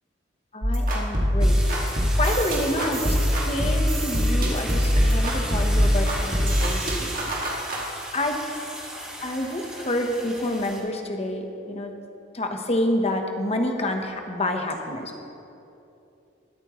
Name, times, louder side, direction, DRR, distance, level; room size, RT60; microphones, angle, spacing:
voice 1, 0.5-1.9 2.2-3.2 3.4-7.1 8.1-8.4 9.2-11.9 12.3-15.3, left 1 dB, 35° left, 3 dB, 1.0 m, -28 dB
sound 1, 0.6-7.8, equal, 45° right, 2.0 m, -23 dB
sound 2, 1.4-10.8, right 1 dB, 5° right, 1.9 m, -35 dB
21.0 x 8.8 x 3.1 m, 2.9 s
head